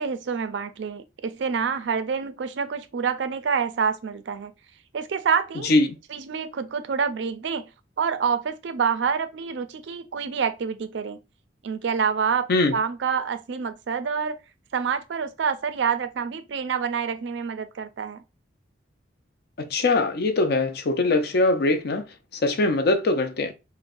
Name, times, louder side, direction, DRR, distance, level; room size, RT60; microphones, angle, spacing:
voice 1, 0.0-4.5 4.9-5.7 6.1-7.7 8.0-11.2 11.6-12.4 12.7-14.4 14.7-18.2, right 6 dB, 70° right, 0.4 m, -27 dB
voice 2, 19.6-22.0 22.3-23.5, left 2 dB, 55° left, 0.5 m, -22 dB
3.7 x 2.1 x 2.5 m
head